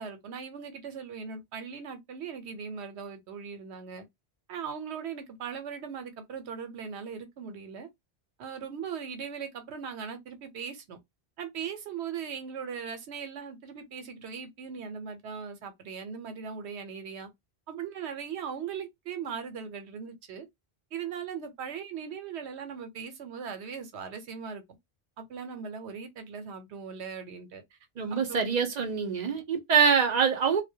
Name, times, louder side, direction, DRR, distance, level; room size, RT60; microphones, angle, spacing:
voice 1, 0.0-4.0 4.5-7.9 8.4-11.0 11.4-17.3 17.7-20.5 20.9-24.6 25.2-27.6 28.1-28.5, right 6 dB, 90° right, 1.0 m, -39 dB
voice 2, 28.0-30.6, right 6 dB, 50° right, 0.6 m, -25 dB
2.2 x 2.1 x 2.6 m
omnidirectional pair, 1.1 m